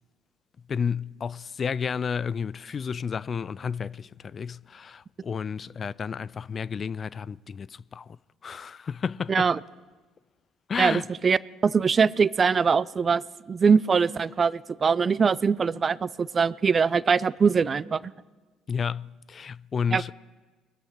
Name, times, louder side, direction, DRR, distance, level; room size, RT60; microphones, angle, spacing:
voice 1, 0.7-8.2 8.4-9.5 10.7-11.0 18.7-20.1, left 6 dB, 40° left, 0.3 m, -31 dB
voice 2, 9.3-9.6 10.8-13.2 13.5-18.0 19.9-20.1, right 5 dB, 35° right, 0.4 m, -22 dB
22.0 x 7.9 x 4.4 m
hypercardioid pair, 55°, 0 cm